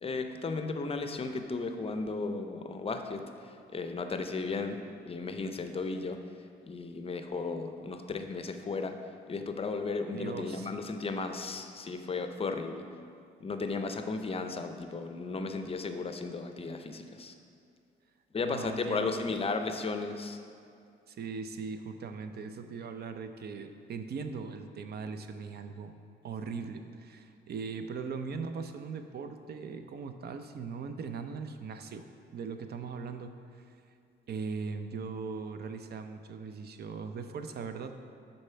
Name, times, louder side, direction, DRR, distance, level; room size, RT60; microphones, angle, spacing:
voice 1, 0.0-6.2 6.6-9.0 9.3-12.8 13.4-17.3 18.3-20.4, left 3 dB, 30° left, 7 dB, 0.5 m, -35 dB
voice 2, 10.1-10.7 18.4-19.3 21.1-25.9 26.2-32.1 32.3-33.8 34.3-38.0, right 5 dB, 55° right, 8 dB, 0.5 m, -39 dB
6.6 x 4.2 x 5.6 m, 2.5 s
cardioid pair, 90°, 20 cm